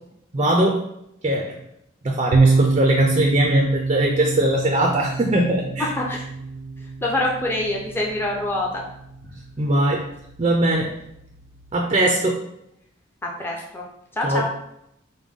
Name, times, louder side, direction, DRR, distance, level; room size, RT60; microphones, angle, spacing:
voice 1, 0.3-0.8 1.2-1.5 2.0-5.9 9.6-10.0 10.4-10.9 11.7-12.4 14.2-14.4, right 1 dB, 30° right, 1 dB, 0.4 m, -20 dB
sound 1, 2.3-11.7, right 4 dB, 85° right, 0.5 m, -27 dB
voice 2, 5.9-6.3 7.0-8.8 13.2-13.9 14.1-14.5, left 1 dB, 10° left, -2 dB, 0.6 m, -25 dB
5.1 x 2.2 x 3.6 m, 0.78 s
head